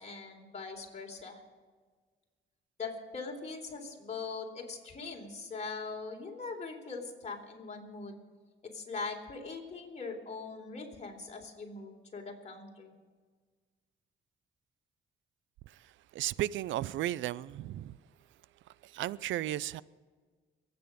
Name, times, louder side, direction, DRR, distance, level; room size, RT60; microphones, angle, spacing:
voice 1, 0.0-1.4 2.8-8.2 8.6-12.9, left 4 dB, 35° left, 3.8 m, -41 dB
voice 2, 16.1-18.0 18.8-19.8, right 13 dB, 75° right, 0.5 m, -34 dB
23.0 x 9.3 x 5.2 m
cardioid pair, 90°, 20 cm